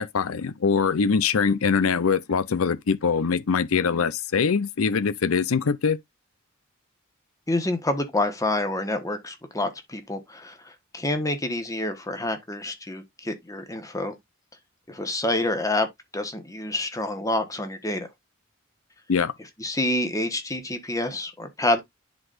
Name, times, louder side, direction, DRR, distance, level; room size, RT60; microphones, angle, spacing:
voice 1, 0.0-6.0 19.1-19.3, left 5 dB, 85° left, 0.6 m, -23 dB
voice 2, 7.5-14.2 14.9-15.9 16.1-18.1 19.6-21.8, left 1 dB, 15° left, 1.2 m, -27 dB
10.5 x 4.1 x 2.5 m
head